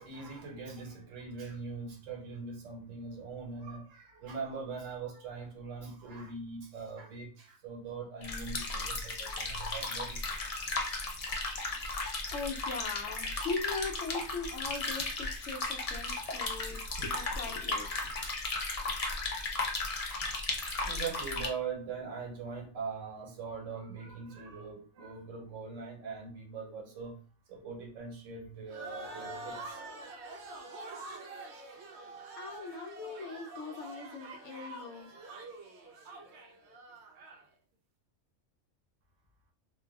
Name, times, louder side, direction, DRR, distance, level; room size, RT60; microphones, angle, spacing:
voice 1, 0.0-10.4 20.8-27.2 27.5-29.8, right 5 dB, 85° right, 1.2 m, -41 dB
sound 1, 8.2-21.5, left 3 dB, 45° left, 0.4 m, -35 dB
voice 2, 11.7-18.1 32.4-35.1, left 4 dB, 75° left, 0.9 m, -40 dB
sound 2, 28.7-37.5, right 2 dB, 65° right, 0.8 m, -46 dB
3.3 x 2.2 x 2.3 m
omnidirectional pair, 1.3 m